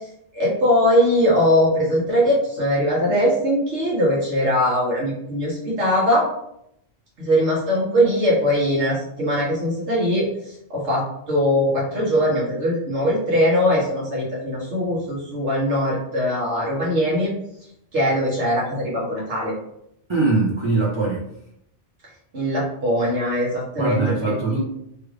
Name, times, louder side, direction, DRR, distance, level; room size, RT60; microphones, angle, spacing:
voice 1, 0.3-6.2 7.2-10.3 10.7-17.3 17.9-19.5 22.3-24.6, equal, 70° right, -5 dB, 1.5 m, -21 dB
voice 2, 20.1-21.2 23.8-24.6, right 3 dB, 35° right, -6 dB, 0.5 m, -21 dB
3.2 x 2.4 x 3.2 m, 0.77 s
omnidirectional pair, 1.2 m